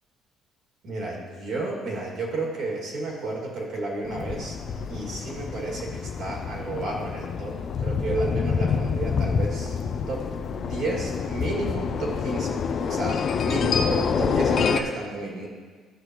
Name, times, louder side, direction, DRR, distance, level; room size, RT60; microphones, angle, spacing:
voice 1, 0.8-4.6 4.9-7.5 7.8-9.8 10.1-10.2 10.6-15.5, right 2 dB, 55° right, -2 dB, 2.3 m, -31 dB
sound 1, 4.0-14.8, left 6 dB, 40° left, 0.4 m, -27 dB
14.0 x 6.4 x 3.1 m, 1.5 s
cardioid pair, 160°, 0 cm